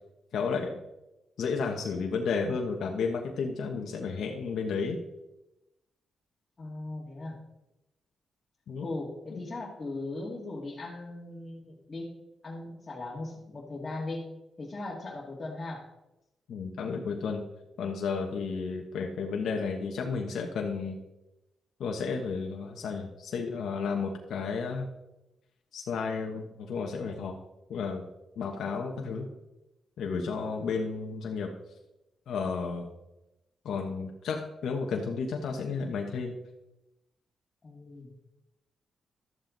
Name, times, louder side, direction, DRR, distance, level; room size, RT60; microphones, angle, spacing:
voice 1, 0.3-0.8 1.4-5.0 8.7-8.9 9.3-9.4 16.5-17.4 17.8-21.0 21.8-24.9 25.7-27.4 27.7-28.0 28.4-29.3 30.0-31.5 32.3-32.9 33.6-36.3, left 5 dB, 80° left, 1 dB, 1.1 m, -32 dB
voice 2, 6.6-7.4 8.8-12.2 12.4-14.3 14.6-15.9 28.9-29.3 37.6-38.1, left 2 dB, 35° left, -4 dB, 2.2 m, -38 dB
12.5 x 7.5 x 3.9 m, 0.93 s
cardioid pair, 75°, 0 cm